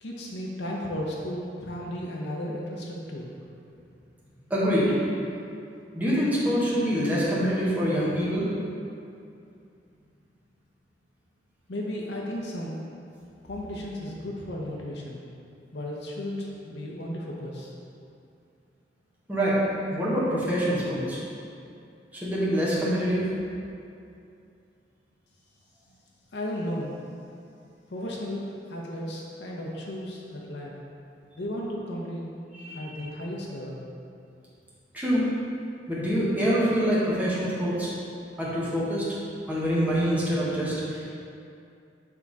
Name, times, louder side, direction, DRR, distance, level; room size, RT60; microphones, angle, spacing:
voice 1, 0.0-3.3 11.7-12.8 13.5-15.2 15.7-17.7 26.3-26.9 27.9-30.8 31.4-32.3 32.6-33.8, left 1 dB, 65° left, -3 dB, 0.7 m, -34 dB
voice 2, 4.5-5.0 5.9-8.5 19.3-19.6 19.9-21.2 22.1-23.3 32.6-33.1 34.9-35.2 35.9-37.9 38.4-39.1 39.5-41.1, equal, 10° right, -9 dB, 1.3 m, -25 dB
7.1 x 3.5 x 4.0 m, 2.5 s
head